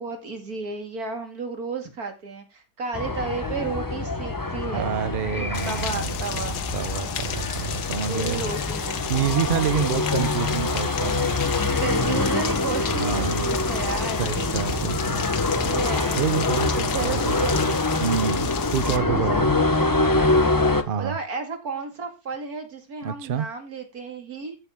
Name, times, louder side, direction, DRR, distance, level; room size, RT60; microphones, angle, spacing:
voice 1, 0.0-6.6 8.1-9.0 10.1-10.5 11.8-14.3 15.5-16.2 16.9-17.7 19.1-20.4 21.0-24.6, right 4 dB, 65° right, 2.8 m, -33 dB
sound 1, 2.9-20.8, left 2 dB, 20° left, 0.7 m, -25 dB
voice 2, 4.7-8.5 9.1-11.7 12.9-13.5 14.2-15.2 16.1-17.7 18.0-19.5 20.8-21.2 23.0-23.5, right 8 dB, 50° right, 0.6 m, -28 dB
Rain, 5.5-19.0, left 9 dB, 80° left, 1.5 m, -33 dB
14.0 x 7.2 x 3.6 m
omnidirectional pair, 1.7 m